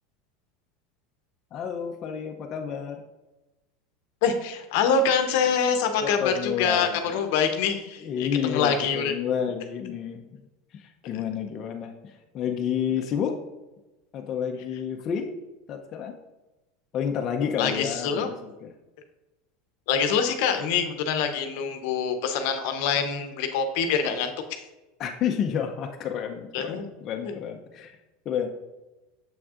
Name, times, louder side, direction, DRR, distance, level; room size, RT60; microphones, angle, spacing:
voice 1, 1.5-3.0 6.0-7.0 8.0-10.4 10.7-13.4 14.1-15.3 15.7-16.1 16.9-18.7 25.0-28.0 28.3-28.5, left 8 dB, 40° left, 2 dB, 0.6 m, -30 dB
voice 2, 4.2-9.1 17.6-18.3 19.9-24.6 26.5-26.9 27.2-27.3, left 6 dB, 70° left, 7 dB, 0.8 m, -25 dB
7.0 x 6.0 x 2.5 m, 1.1 s
supercardioid pair, 125°, 0 cm